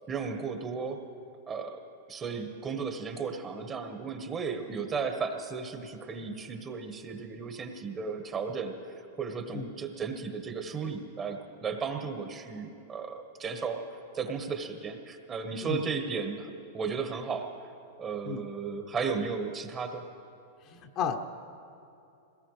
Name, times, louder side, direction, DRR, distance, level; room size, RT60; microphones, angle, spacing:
voice 1, 0.1-1.0 1.5-1.8 2.1-13.8 14.1-17.5 18.0-20.1, right 5 dB, 25° right, 5 dB, 1.4 m, -35 dB
voice 2, 20.6-21.2, left 6 dB, 40° left, 4 dB, 1.1 m, -33 dB
21.5 x 18.5 x 3.3 m, 2.7 s
hypercardioid pair, 120°, 0 cm